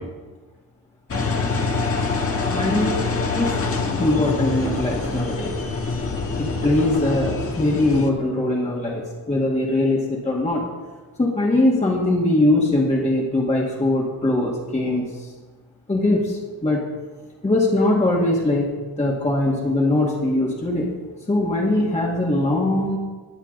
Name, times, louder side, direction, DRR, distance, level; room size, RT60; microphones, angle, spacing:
Engine, 1.1-8.1, left 3 dB, 35° left, 1.5 m, -25 dB
voice 1, 2.5-3.1 3.4-3.5 4.0-5.5 6.4-10.6 11.2-15.0 15.9-16.8 17.4-18.7 19.0-20.9 21.3-23.0, left 2 dB, 20° left, -4 dB, 2.0 m, -21 dB
20.5 x 7.3 x 4.0 m, 1.3 s
cardioid pair, 105°, 37 cm